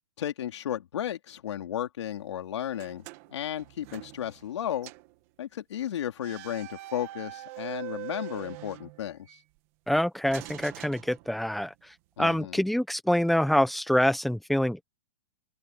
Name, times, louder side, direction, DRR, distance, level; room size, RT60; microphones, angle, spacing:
voice 1, 0.2-3.0 3.3-4.9 5.4-9.4 12.2-12.6, left 10 dB, 60° left, 2.9 m, -34 dB
sound 1, 2.7-4.6 4.8-5.1 6.2-9.4 10.3-11.7, right 20 dB, 30° right, 2.3 m, -43 dB
voice 2, 9.9-11.7 12.2-14.8, equal, ahead, 1.1 m, -25 dB
open air
hypercardioid pair, 175°, 16 cm